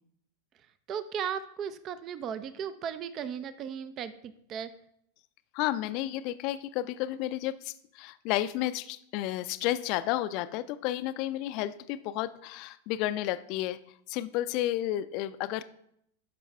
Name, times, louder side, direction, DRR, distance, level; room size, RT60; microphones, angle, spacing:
voice 1, 0.9-4.7, right 8 dB, 30° right, 14 dB, 0.4 m, -36 dB
voice 2, 5.5-13.8 14.1-15.6, left 14 dB, 45° left, 14 dB, 0.4 m, -32 dB
11.5 x 5.4 x 3.4 m, 0.72 s
figure-of-eight pair, 90°, 0 cm